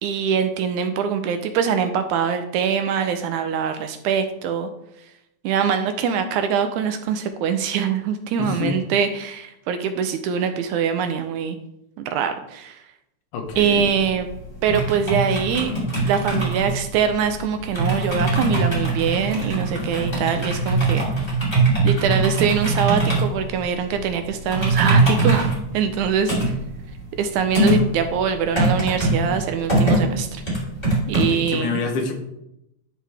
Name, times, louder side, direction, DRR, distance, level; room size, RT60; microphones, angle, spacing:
voice 1, 0.0-4.7 5.4-11.6 12.0-12.8 13.6-14.3 14.6-15.7 16.1-21.1 21.8-26.6 27.2-30.4 31.1-31.8, right 7 dB, 80° right, 8 dB, 1.9 m, -23 dB
voice 2, 8.4-8.7 13.3-13.9 31.2-32.2, left 4 dB, 75° left, 4 dB, 2.5 m, -27 dB
sound 1, 13.5-31.2, right 2 dB, 10° left, 2.8 m, -22 dB
11.5 x 4.6 x 3.4 m, 0.84 s
omnidirectional pair, 3.7 m